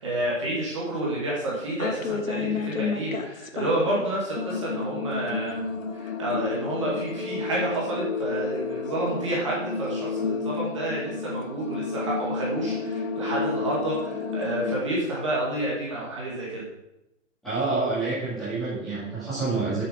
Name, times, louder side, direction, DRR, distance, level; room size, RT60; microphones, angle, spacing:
voice 1, 0.0-5.6 5.9-16.6, right 1 dB, 25° right, -5 dB, 2.1 m, -29 dB
sound 1, 1.8-4.1 4.4-14.8, left 5 dB, 90° left, 1.7 m, -31 dB
voice 2, 17.4-19.8, right 3 dB, ahead, -14 dB, 2.3 m, -27 dB
9.5 x 7.2 x 5.1 m, 0.91 s
hypercardioid pair, 180°, 39 cm